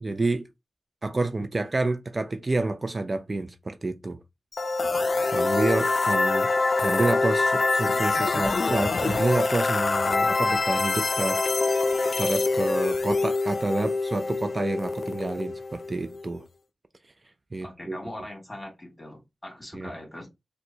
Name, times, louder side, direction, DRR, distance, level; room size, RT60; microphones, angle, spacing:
voice 1, 0.0-0.5 1.0-4.2 5.3-6.5 6.8-11.9 12.2-16.5 17.5-18.0 19.7-19.9, right 2 dB, 35° right, 0.4 m, -29 dB
sound 1, 4.5-16.4, left 3 dB, 55° left, 0.4 m, -25 dB
voice 2, 17.6-20.3, left 1 dB, 20° left, 2.2 m, -41 dB
4.3 x 2.1 x 2.7 m
cardioid pair, 70°, 0 cm